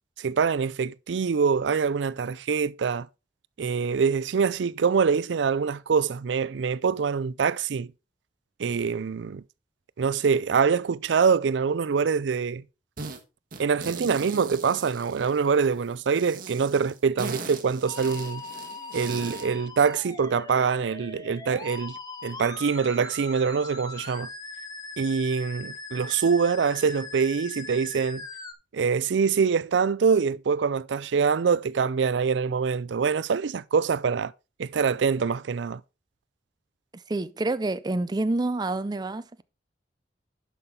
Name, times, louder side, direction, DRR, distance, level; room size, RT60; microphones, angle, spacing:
voice 1, 0.2-3.1 3.6-7.9 8.6-9.4 10.0-12.6 13.6-18.4 18.9-22.0 22.2-24.3 25.0-28.2 28.7-34.3 34.6-35.8, right 6 dB, 80° right, 0.4 m, -24 dB
sound 1, 13.0-13.2 13.5-15.6 16.1-19.5, right 4 dB, 50° right, 1.3 m, -39 dB
Musical instrument, 17.9-28.5, left 3 dB, 20° left, 0.9 m, -40 dB
voice 2, 36.9-39.4, right 2 dB, 25° right, 0.4 m, -28 dB
11.0 x 5.8 x 3.7 m
head